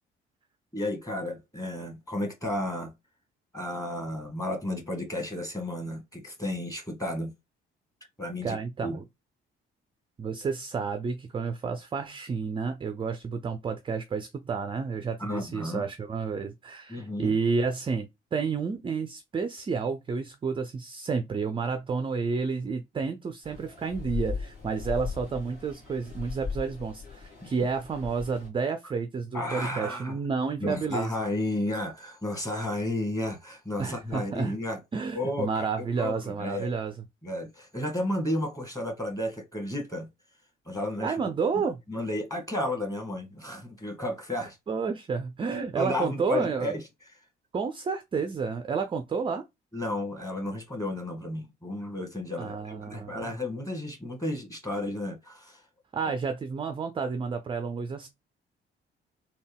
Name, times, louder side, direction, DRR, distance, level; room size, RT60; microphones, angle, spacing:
voice 1, 0.7-2.9 3.5-7.3 8.2-9.0 15.2-15.9 16.9-17.4 29.3-30.2 30.6-34.8 35.1-35.7 36.0-36.7 37.2-40.1 40.7-41.1 41.9-44.6 45.7-46.8 49.7-55.6, left 1 dB, 10° left, 1.4 m, -32 dB
voice 2, 8.4-9.0 10.2-31.1 33.8-34.6 34.9-36.9 41.0-41.8 44.7-46.7 47.5-49.4 52.4-53.3 55.9-58.1, right 5 dB, 20° right, 0.4 m, -30 dB
sound 1, 23.4-28.5, left 5 dB, 50° left, 1.8 m, -38 dB
3.4 x 2.1 x 3.3 m
figure-of-eight pair, 45°, 29 cm